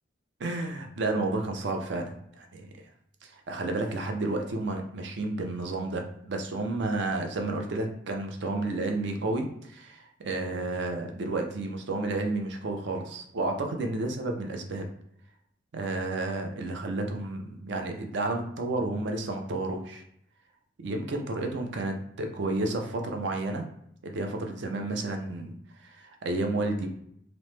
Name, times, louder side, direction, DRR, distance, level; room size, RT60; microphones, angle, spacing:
voice 1, 0.4-2.7 3.2-14.9 15.7-20.0 20.8-23.7 24.0-25.5 25.8-26.9, right 2 dB, 65° right, 3 dB, 0.5 m, -31 dB
3.0 x 2.0 x 3.1 m, 0.71 s
head